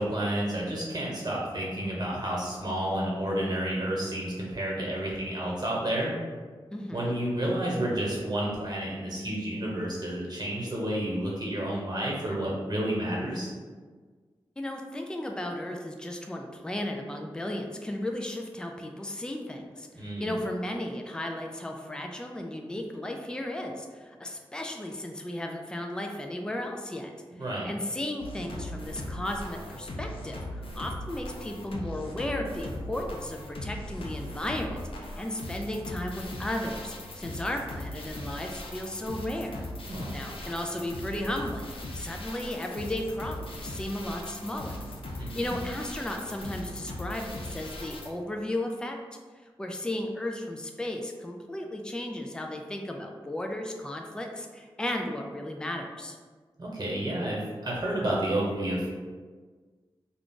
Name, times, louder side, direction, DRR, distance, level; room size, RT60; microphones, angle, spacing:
voice 1, 0.0-6.2 6.9-13.5 19.9-20.3 27.4-27.7 39.8-40.1 45.2-45.6 56.6-58.9, right 1 dB, 45° right, -4 dB, 1.2 m, -30 dB
voice 2, 6.7-7.1 14.6-27.1 27.6-39.7 40.1-44.7 45.2-49.0 49.6-56.2, left 1 dB, 10° left, 2 dB, 0.4 m, -35 dB
sound 1, 28.2-48.1, left 1 dB, 70° left, 0.4 m, -39 dB
2.4 x 2.4 x 3.7 m, 1.5 s
cardioid pair, 45°, 10 cm